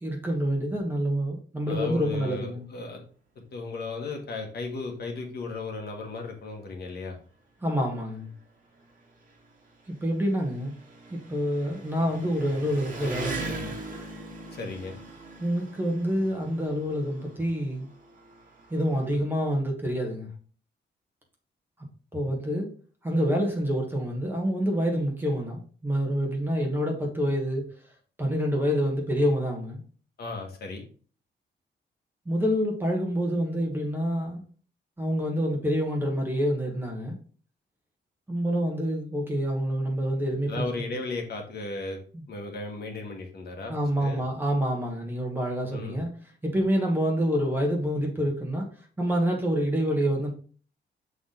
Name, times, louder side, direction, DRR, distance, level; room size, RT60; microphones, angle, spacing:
voice 1, 0.0-2.6 7.6-8.3 9.9-10.7 11.1-13.7 15.4-17.9 18.7-20.3 22.1-22.7 23.0-27.6 28.2-29.8 32.2-34.4 35.0-37.2 38.3-40.9 42.1-42.2 43.7-46.1 46.4-48.7 49.0-50.3, equal, 10° right, 0 dB, 1.4 m, -27 dB
voice 2, 1.7-3.0 3.5-7.2 14.5-15.0 30.2-30.8 40.5-42.0 42.3-43.7 44.0-44.2 45.7-46.0, left 3 dB, 60° left, 2 dB, 1.7 m, -35 dB
Engine, 5.1-5.2 6.2-6.3 6.5-19.2, right 2 dB, 45° right, 1.7 m, -42 dB
7.1 x 4.1 x 3.9 m, 0.41 s
wide cardioid pair, 180°, 19 cm